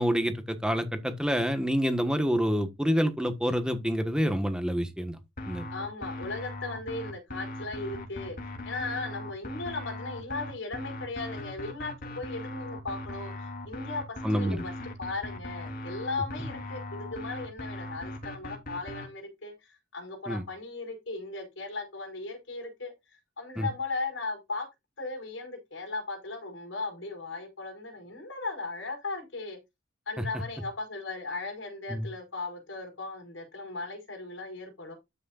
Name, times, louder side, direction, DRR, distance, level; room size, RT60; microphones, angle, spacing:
voice 1, 0.0-5.2 5.5-5.7 14.2-14.6 20.3-20.4 23.6-23.7 31.9-32.1, equal, 5° right, 1.3 m, -27 dB
sound 1, 5.4-19.1, left 1 dB, 50° left, 3.2 m, -39 dB
voice 2, 5.7-8.4 8.6-14.0 14.3-14.7 15.0-22.9 23.4-24.7 25.0-29.6 30.1-34.9, left 3 dB, 90° left, 5.0 m, -37 dB
13.0 x 6.4 x 2.4 m
head